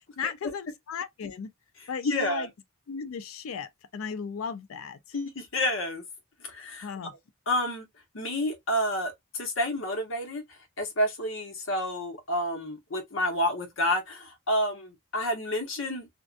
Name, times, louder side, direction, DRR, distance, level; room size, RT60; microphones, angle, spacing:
voice 1, 0.2-1.5 1.9-2.5 2.9-5.0 6.8-7.1, left 6 dB, 90° left, 0.4 m, -36 dB
voice 2, 2.0-2.5 5.1-6.0 6.5-6.9 7.5-7.9 8.1-10.4 10.8-16.1, left 1 dB, 70° left, 0.9 m, -29 dB
2.5 x 2.1 x 2.4 m
head